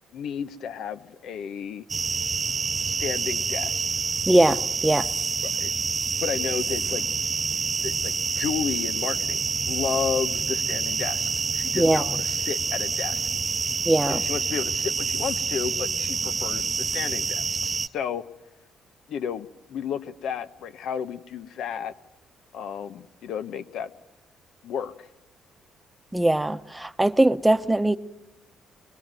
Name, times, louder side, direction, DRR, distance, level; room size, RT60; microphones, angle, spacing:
voice 1, 0.1-1.8 2.8-3.8 5.4-5.7 6.2-7.0 7.8-13.3 14.1-18.2 19.1-21.9 22.5-23.9 24.6-25.1, left 7 dB, 75° left, 1.1 m, -32 dB
sound 1, 1.9-17.9, right 5 dB, 35° right, 0.8 m, -27 dB
voice 2, 4.3-5.1 11.7-12.2 13.8-14.2 26.1-28.0, right 1 dB, 10° right, 1.0 m, -21 dB
23.0 x 21.5 x 9.1 m
cardioid pair, 90°, 0 cm